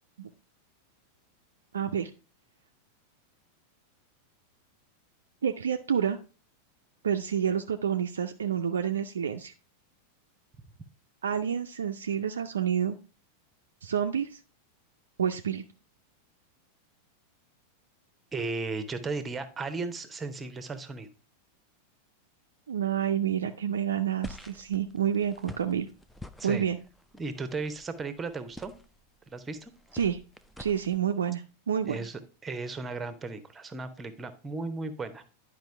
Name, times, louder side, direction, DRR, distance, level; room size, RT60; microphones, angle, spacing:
voice 1, 1.7-2.1 5.4-6.2 7.0-9.5 11.2-13.0 13.8-14.4 15.2-15.6 22.7-25.9 26.4-26.8 29.9-30.2 30.6-32.0, right 8 dB, 65° right, 5 dB, 0.4 m, -28 dB
voice 2, 18.3-21.1 26.4-26.7 27.1-28.7 29.3-29.7 31.8-35.2, right 3 dB, 15° right, 10 dB, 0.9 m, -35 dB
sound 1, 24.2-31.0, left 2 dB, 5° left, 0.5 m, -48 dB
10.5 x 5.0 x 3.3 m, 0.36 s
figure-of-eight pair, 90°, 0 cm